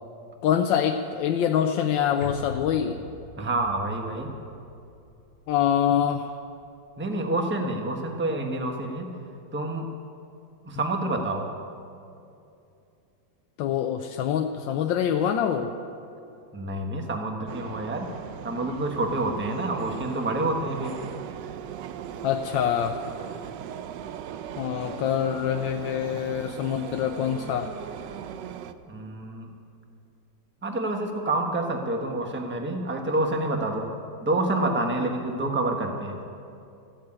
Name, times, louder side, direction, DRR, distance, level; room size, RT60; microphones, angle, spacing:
voice 1, 0.4-3.0 5.5-6.3 13.6-15.7 22.2-23.0 24.6-27.7, left 9 dB, 75° left, 5 dB, 1.3 m, -25 dB
sound 1, 2.2-6.7 7.0-7.1, left 4 dB, 40° left, 1.0 m, -42 dB
voice 2, 3.4-4.3 7.0-9.1 9.5-9.9 10.6-11.5 16.5-18.1 18.4-21.0 28.9-29.5 30.6-33.9 34.2-36.2, right 2 dB, 10° right, 3 dB, 0.8 m, -28 dB
sound 2, 17.5-28.7, right 9 dB, 75° right, 1.2 m, -38 dB
14.5 x 8.7 x 8.7 m, 2.6 s
omnidirectional pair, 2.1 m